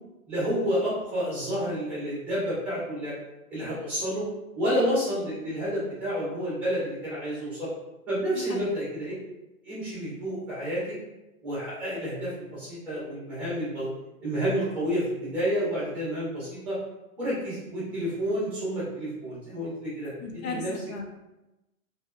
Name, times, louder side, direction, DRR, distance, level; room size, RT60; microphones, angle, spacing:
voice 1, 0.3-3.1 3.5-4.2 4.5-7.7 8.1-9.1 9.6-10.9 11.4-13.9 14.2-16.8 17.2-20.7, equal, 5° right, -9 dB, 0.6 m, -30 dB
voice 2, 8.3-8.8 20.2-21.1, left 3 dB, 80° left, 3 dB, 0.6 m, -36 dB
2.7 x 2.2 x 2.3 m, 0.97 s
hypercardioid pair, 165°, 43 cm